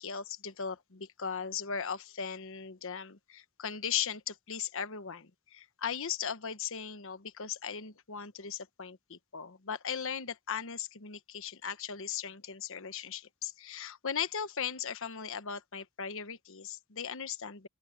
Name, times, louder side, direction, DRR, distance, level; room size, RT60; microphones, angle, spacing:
voice 1, 0.0-17.7, left 7 dB, 65° left, 1.2 m, -38 dB
open air
head